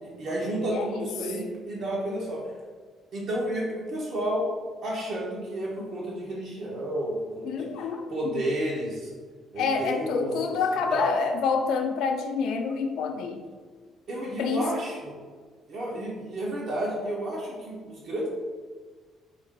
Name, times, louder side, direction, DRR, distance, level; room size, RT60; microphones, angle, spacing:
voice 1, 0.0-2.4 3.1-4.5 4.8-7.7 8.1-9.1 9.5-10.6 10.9-11.2 14.1-14.9 15.7-18.3, right 1 dB, 50° right, -4 dB, 0.8 m, -31 dB
voice 2, 0.7-1.1 5.8-5.9 7.4-8.5 9.6-13.4 14.4-14.7, left 5 dB, 65° left, 5 dB, 0.4 m, -28 dB
4.9 x 2.8 x 3.6 m, 1.5 s
cardioid pair, 175°, 0 cm